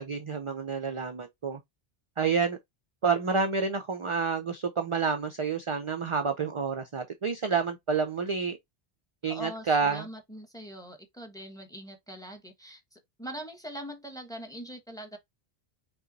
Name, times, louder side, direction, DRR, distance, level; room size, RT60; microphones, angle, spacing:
voice 1, 0.0-1.6 2.2-2.6 3.0-8.6 9.2-10.1, right 5 dB, 40° right, 0.5 m, -29 dB
voice 2, 9.2-15.2, equal, 5° left, 1.0 m, -42 dB
5.6 x 2.4 x 4.0 m
omnidirectional pair, 1.1 m